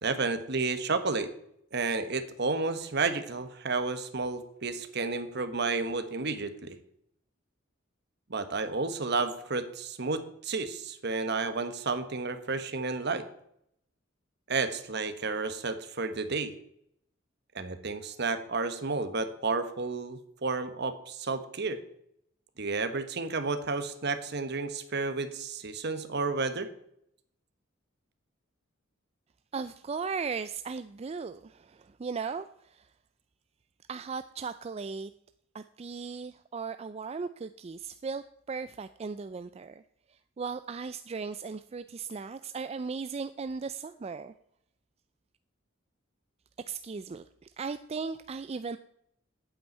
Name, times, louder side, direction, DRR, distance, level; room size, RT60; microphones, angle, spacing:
voice 1, 0.0-1.3 1.7-6.8 8.3-13.2 14.5-16.5 17.5-21.8 22.6-26.7, right 3 dB, 60° right, 10 dB, 1.3 m, -31 dB
voice 2, 29.5-32.9 33.9-35.1 35.5-39.8 40.1-44.3 46.6-48.8, right 5 dB, 30° right, 12 dB, 0.4 m, -37 dB
8.9 x 8.1 x 8.9 m, 0.73 s
head